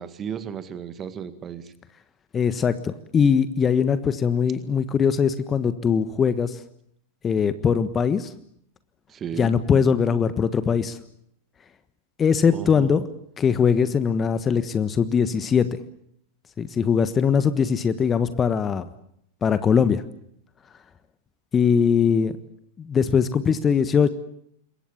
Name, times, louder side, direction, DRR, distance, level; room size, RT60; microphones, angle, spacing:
voice 1, 0.0-1.7 9.1-9.6 12.5-12.9, right 8 dB, 25° right, 12 dB, 2.0 m, -34 dB
voice 2, 2.3-6.6 7.2-8.3 9.4-11.0 12.2-13.1 13.4-15.7 16.6-18.8 19.4-20.0 21.5-22.4 22.8-24.1, left 6 dB, 20° left, 13 dB, 1.4 m, -21 dB
27.0 x 23.0 x 7.3 m, 0.71 s
figure-of-eight pair, 90°, 0 cm